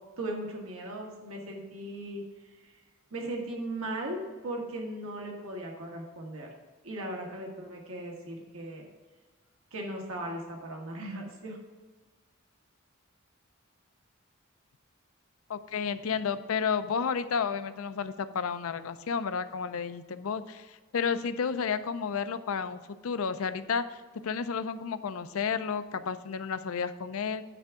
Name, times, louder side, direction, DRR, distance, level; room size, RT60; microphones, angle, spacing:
voice 1, 0.2-2.7 3.1-6.5 6.8-8.8 9.7-11.6, right 1 dB, 85° right, 0 dB, 1.4 m, -38 dB
voice 2, 15.5-27.4, left 6 dB, 80° left, 12 dB, 0.5 m, -32 dB
9.3 x 3.5 x 7.0 m, 1.3 s
head